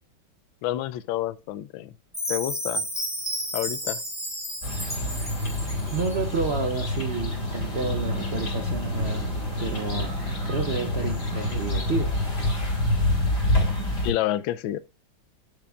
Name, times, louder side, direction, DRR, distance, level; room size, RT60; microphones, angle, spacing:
voice 1, 0.6-1.9 2.3-2.9 3.5-4.0 14.0-14.8, left 14 dB, 85° left, 1.3 m, -29 dB
Chime, 2.1-6.2, equal, ahead, 2.3 m, -32 dB
sound 1, 4.6-14.1, left 1 dB, 55° left, 3.8 m, -27 dB
voice 2, 5.9-9.3 9.6-10.1 10.4-12.1, right 5 dB, 60° right, 0.6 m, -30 dB
10.5 x 6.8 x 2.4 m
omnidirectional pair, 2.1 m